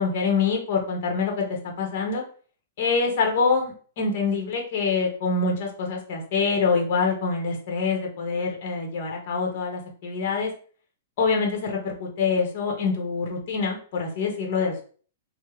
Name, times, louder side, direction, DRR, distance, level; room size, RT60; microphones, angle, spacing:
voice 1, 0.0-2.2 2.8-10.5 11.2-14.8, left 4 dB, 50° left, 2 dB, 0.9 m, -25 dB
3.4 x 2.1 x 3.0 m, 0.43 s
hypercardioid pair, 150°, 0 cm